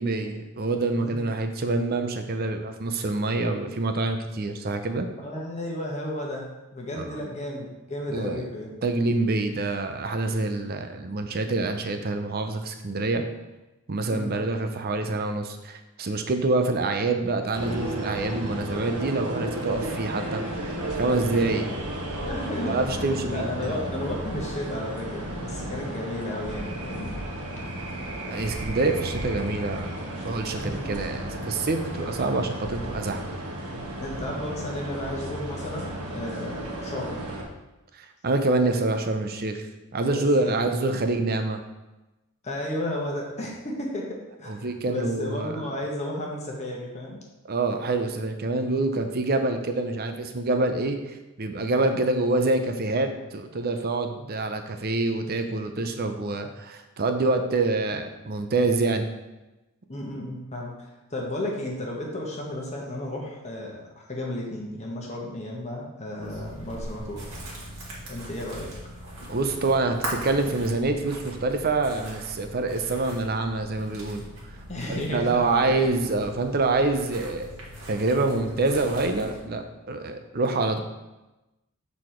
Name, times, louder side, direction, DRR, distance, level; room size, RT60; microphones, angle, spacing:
voice 1, 0.0-5.1 7.0-7.1 8.1-8.5 8.8-13.2 13.9-21.7 22.6-23.8 28.1-33.2 37.9-39.6 39.9-41.6 44.5-45.6 47.5-59.1 69.3-74.2 74.9-77.5 77.9-80.8, right 2 dB, 45° right, 7 dB, 0.6 m, -26 dB
voice 2, 1.0-1.3 5.2-8.9 14.0-14.4 22.1-27.2 30.6-30.9 33.6-37.3 40.0-40.8 42.4-47.2 59.9-67.3 67.6-67.7 68.0-68.7 74.7-75.9, left 1 dB, 30° left, -1 dB, 1.1 m, -33 dB
sound 1, 17.5-37.4, right 1 dB, 90° right, 1.2 m, -33 dB
sound 2, 66.2-79.4, equal, 65° right, 1.8 m, -40 dB
6.9 x 4.2 x 4.4 m, 1.0 s
head